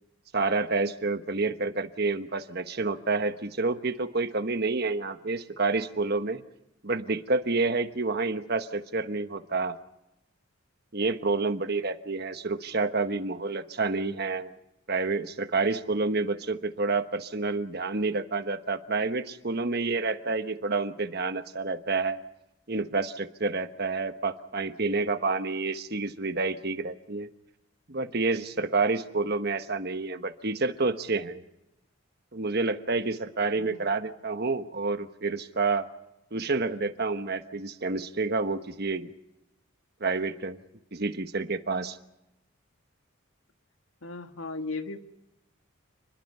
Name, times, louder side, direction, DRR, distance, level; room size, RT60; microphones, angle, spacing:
voice 1, 0.3-6.4 6.8-9.8 10.9-14.5 14.9-22.2 22.7-27.3 27.9-31.4 32.3-35.9 36.3-39.1 40.0-40.6 40.9-42.0, right 3 dB, 50° right, 9 dB, 1.2 m, -29 dB
voice 2, 33.5-33.8 44.0-45.0, left 3 dB, 75° left, 7 dB, 1.7 m, -36 dB
29.0 x 21.5 x 5.6 m, 0.91 s
head